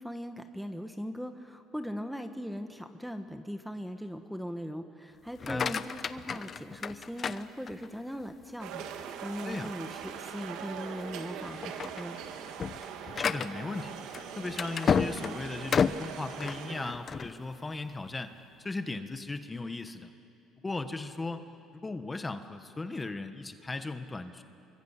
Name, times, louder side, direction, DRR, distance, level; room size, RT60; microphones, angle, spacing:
voice 1, 0.0-12.2, equal, ahead, 7 dB, 1.2 m, -39 dB
sound 1, 5.3-8.1 8.6-9.0 9.5-9.6 10.0-10.2 10.9-11.1 11.5-17.3, left 6 dB, 40° left, 0.8 m, -32 dB
voice 2, 5.4-5.7 9.4-9.7 13.1-14.0 14.4-20.1 20.6-21.4 21.7-24.4, left 3 dB, 20° left, 9 dB, 1.3 m, -37 dB
sound 2, 8.6-16.9, right 8 dB, 75° right, 1.8 m, -42 dB
25.5 x 23.5 x 8.2 m, 2.6 s
cardioid pair, 105°, 0 cm